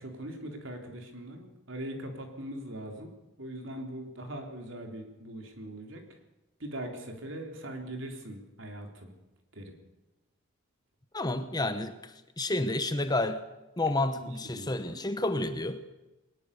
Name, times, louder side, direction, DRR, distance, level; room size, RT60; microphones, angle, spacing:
voice 1, 0.0-3.1 3.4-6.0 6.6-9.1 9.5-9.7 14.2-15.0, right 1 dB, 60° right, 4 dB, 3.7 m, -41 dB
voice 2, 11.1-13.4 13.8-15.8, left 2 dB, 20° left, 10 dB, 1.0 m, -30 dB
21.0 x 19.5 x 6.9 m, 1.1 s
head